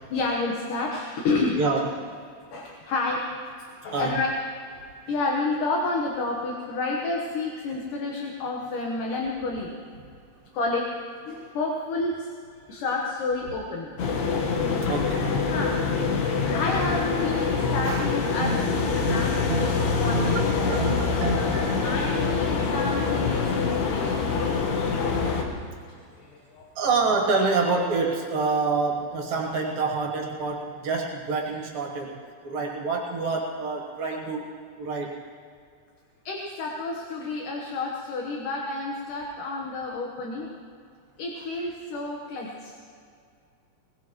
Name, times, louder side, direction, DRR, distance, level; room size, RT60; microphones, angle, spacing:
voice 1, 0.1-1.6 2.5-3.2 3.8-4.3 5.1-9.7 10.5-10.9 11.3-12.3 12.7-13.9 14.3-14.5 15.4-15.8 16.5-20.7 21.8-24.3 26.2-26.7 36.3-40.5 41.2-42.7, left 3 dB, 65° left, -1 dB, 2.6 m, -30 dB
voice 2, 1.6-1.9 3.9-4.1 14.9-15.4 17.8-18.1 18.4-19.8 20.1-22.0 26.8-35.2, right 4 dB, 65° right, 0 dB, 3.1 m, -27 dB
sound 1, 14.0-25.4, left 4 dB, 85° left, 3.5 m, -25 dB
21.5 x 20.5 x 3.1 m, 2.3 s
omnidirectional pair, 4.5 m